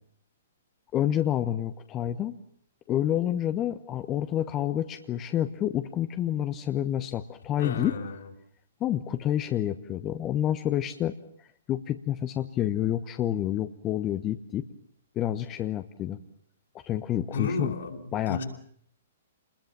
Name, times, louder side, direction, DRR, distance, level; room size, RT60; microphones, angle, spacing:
voice 1, 0.9-2.4 2.9-8.0 8.8-14.6 15.1-16.2 16.8-17.7 18.1-18.4, left 11 dB, 25° left, 8 dB, 1.1 m, -29 dB
voice 2, 7.6-8.2 17.3-18.4, left 4 dB, 70° left, 2 dB, 6.0 m, -32 dB
27.5 x 21.0 x 7.4 m, 0.63 s
hypercardioid pair, 120°, 0 cm